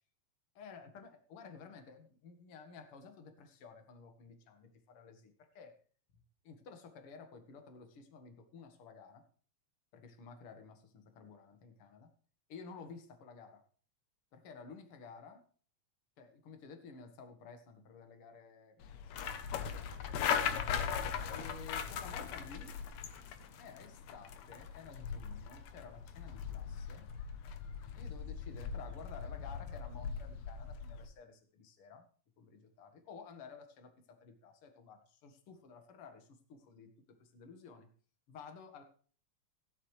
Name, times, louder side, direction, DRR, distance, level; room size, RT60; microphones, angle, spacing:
voice 1, 0.6-5.8 6.4-9.2 9.9-12.1 12.5-13.6 14.3-15.4 16.2-18.9 19.6-20.5 21.3-22.8 23.6-27.1 28.0-32.1 32.4-37.9 38.3-38.8, left 5 dB, 55° left, 6 dB, 2.4 m, -53 dB
sound 1, 18.8-31.1, left 7 dB, 75° left, 2.2 m, -39 dB
16.0 x 11.0 x 3.3 m, 0.43 s
omnidirectional pair, 3.3 m